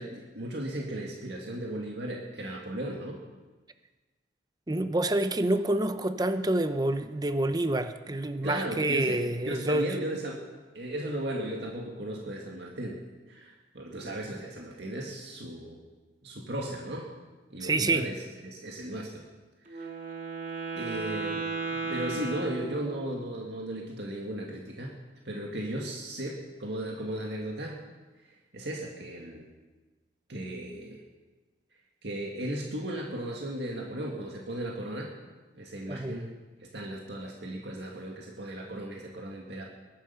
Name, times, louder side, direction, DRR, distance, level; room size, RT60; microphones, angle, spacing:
voice 1, 0.0-3.2 8.4-10.4 10.7-15.8 16.2-17.1 17.5-19.3 19.6-19.9 20.8-21.4 21.7-25.0 25.3-27.8 28.2-29.5 30.3-31.0 32.0-35.1 35.5-36.3 36.6-39.6, right 1 dB, 65° right, -1 dB, 2.1 m, -36 dB
voice 2, 4.7-10.0 17.6-18.1 35.9-36.3, right 2 dB, 20° right, 10 dB, 0.7 m, -28 dB
Wind instrument woodwind instrument, 19.7-23.3, right 4 dB, 45° right, 2.4 m, -35 dB
20.5 x 11.5 x 5.8 m, 1.3 s
head